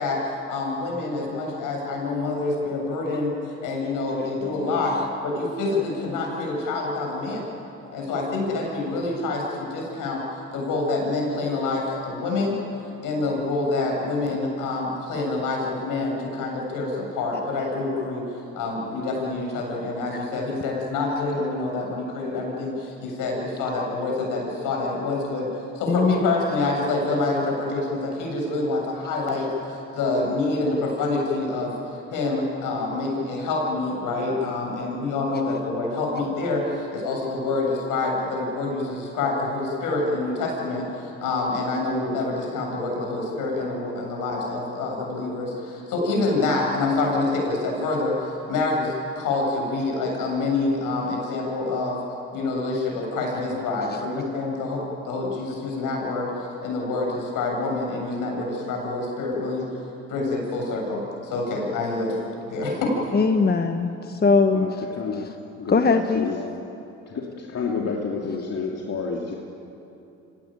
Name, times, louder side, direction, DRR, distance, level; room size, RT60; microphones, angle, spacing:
voice 1, 0.0-5.0 5.2-7.5 7.9-10.2 10.5-12.6 13.0-18.2 18.5-25.5 25.7-52.0 52.3-59.7 60.1-62.2 62.5-62.9, left 3 dB, 70° left, 0 dB, 7.5 m, -26 dB
voice 2, 3.8-4.7 25.9-26.3 63.1-64.8 65.7-66.5, left 4 dB, 30° left, 6 dB, 1.4 m, -22 dB
voice 3, 64.5-65.3 65.6-66.4 67.1-69.4, left 5 dB, 50° left, -1 dB, 2.8 m, -30 dB
26.0 x 17.0 x 9.1 m, 2.9 s
hypercardioid pair, 65°, 34 cm